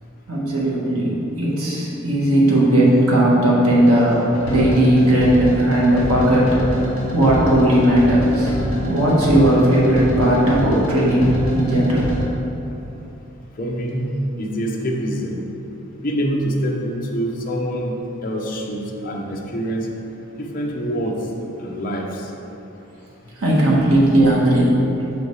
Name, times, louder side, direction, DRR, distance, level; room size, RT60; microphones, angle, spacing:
voice 1, 0.3-4.2 4.4-6.5 6.8-8.5 8.9-12.1 23.4-24.7, right 1 dB, 90° right, -5 dB, 1.5 m, -17 dB
sound 1, 4.0-12.2, left 1 dB, 65° left, 1.4 m, -26 dB
voice 2, 13.6-14.1 14.4-15.4 16.0-17.9 18.2-19.9 20.4-21.2 21.6-22.3, equal, 40° left, -1 dB, 0.7 m, -25 dB
5.7 x 5.2 x 4.7 m, 2.9 s
head